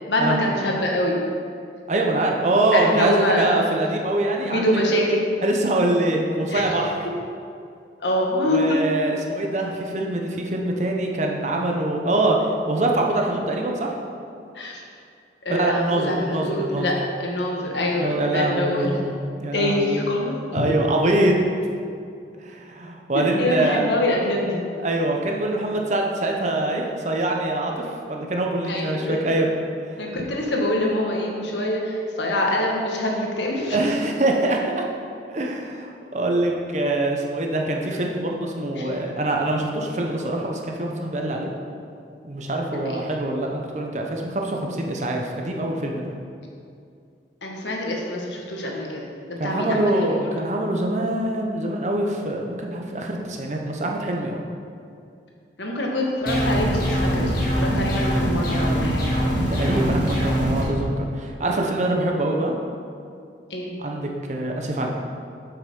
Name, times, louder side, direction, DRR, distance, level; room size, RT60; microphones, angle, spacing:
voice 1, 0.1-1.2 2.7-3.5 4.4-5.2 6.5-6.7 7.0-7.1 8.0-8.8 14.5-14.8 15.4-18.9 19.5-20.6 23.1-24.6 28.7-29.4 30.0-33.8 38.7-38.9 42.7-43.0 47.4-50.5 55.6-59.2 63.5-63.8, left 1 dB, 85° left, -1 dB, 1.5 m, -25 dB
voice 2, 1.9-4.8 5.4-6.9 8.5-12.4 12.7-13.9 15.5-16.9 18.0-19.1 19.4-20.0 20.5-21.4 22.4-23.8 24.8-29.5 29.8-29.9 33.7-34.8 35.2-41.5 42.2-46.0 49.4-54.4 59.5-62.5 63.8-64.9, right 1 dB, 40° right, 1 dB, 1.0 m, -24 dB
sound 1, 56.3-60.6, equal, 55° left, 2.0 m, -22 dB
8.1 x 5.9 x 5.5 m, 2.4 s
head